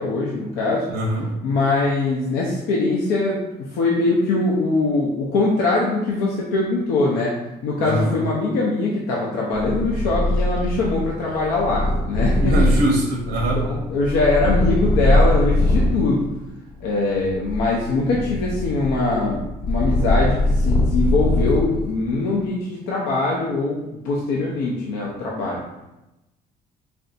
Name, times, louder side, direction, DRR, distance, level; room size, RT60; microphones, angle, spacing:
voice 1, 0.0-0.9 1.4-12.6 13.5-16.3 16.8-25.6, left 2 dB, 90° left, -3 dB, 0.7 m, -22 dB
voice 2, 0.9-1.3 7.8-8.1 12.4-13.6, right 1 dB, 85° right, -1 dB, 0.7 m, -22 dB
Purr, 9.5-16.1 16.7-22.0, left 1 dB, 55° left, 1.0 m, -21 dB
3.4 x 2.6 x 4.0 m, 0.96 s
cardioid pair, 110°, 17 cm